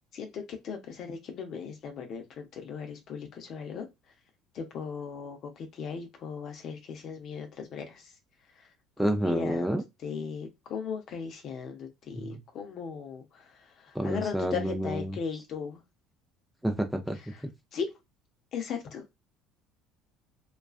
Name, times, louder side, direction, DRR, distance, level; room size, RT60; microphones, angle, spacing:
voice 1, 0.1-3.9 4.5-8.1 8.6-8.7 9.0-9.7 10.0-15.8 17.3-17.4 17.7-17.9 18.5-19.0, left 6 dB, 55° left, 0.7 m, -37 dB
voice 2, 9.0-9.8 12.1-12.4 13.9-15.2 16.6-17.2, right 1 dB, 5° right, 0.6 m, -29 dB
2.4 x 2.3 x 2.4 m
hypercardioid pair, 65°, 0 cm